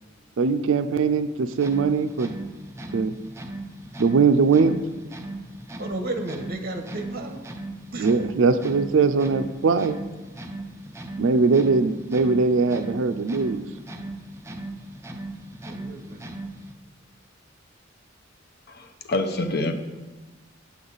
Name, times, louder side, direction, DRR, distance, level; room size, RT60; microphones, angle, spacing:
voice 1, 0.4-2.3 2.9-3.1 4.0-4.8 7.9-10.0 11.2-13.6, right 4 dB, 70° right, 10 dB, 0.4 m, -21 dB
sound 1, 1.5-16.8, right 2 dB, 15° right, 0.5 m, -38 dB
voice 2, 5.8-7.4 7.9-8.1 15.7-16.3, right 2 dB, 50° right, 5 dB, 1.1 m, -33 dB
voice 3, 18.7-19.7, left 2 dB, 55° left, 5 dB, 0.8 m, -26 dB
8.6 x 7.8 x 4.0 m, 1.2 s
head